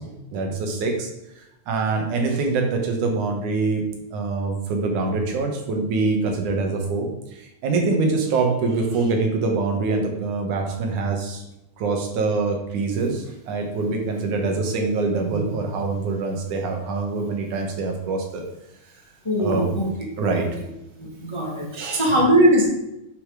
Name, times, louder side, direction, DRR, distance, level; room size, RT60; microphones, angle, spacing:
voice 1, 0.0-11.4 11.8-18.5 19.4-19.7 20.2-20.5 21.7-22.2, right 3 dB, 85° right, 2 dB, 3.0 m, -24 dB
voice 2, 19.2-19.9 20.3-20.4 21.0-22.6, equal, 15° left, -3 dB, 1.4 m, -20 dB
10.0 x 5.8 x 5.0 m, 0.87 s
omnidirectional pair, 3.4 m